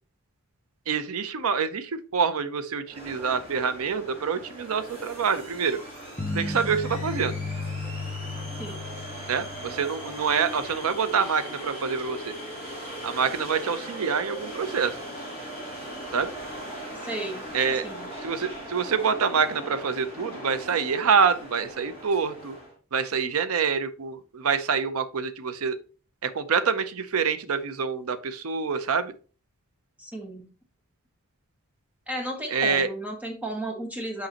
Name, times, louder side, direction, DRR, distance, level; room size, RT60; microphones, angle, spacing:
voice 1, 0.9-5.8 6.3-7.3 9.3-12.3 13.0-15.0 16.1-16.3 17.5-17.8 18.2-22.6 22.9-25.8 26.2-29.1 32.5-32.9, right 6 dB, 85° right, 12 dB, 0.6 m, -26 dB
sound 1, 2.9-22.7, right 1 dB, 30° right, 3.2 m, -39 dB
sound 2, 6.2-10.4, left 3 dB, 25° left, 0.6 m, -34 dB
voice 2, 17.0-17.5 17.8-18.1 30.0-30.5 32.1-34.3, right 1 dB, 5° right, 2 dB, 1.2 m, -34 dB
6.4 x 5.3 x 2.9 m, 0.37 s
head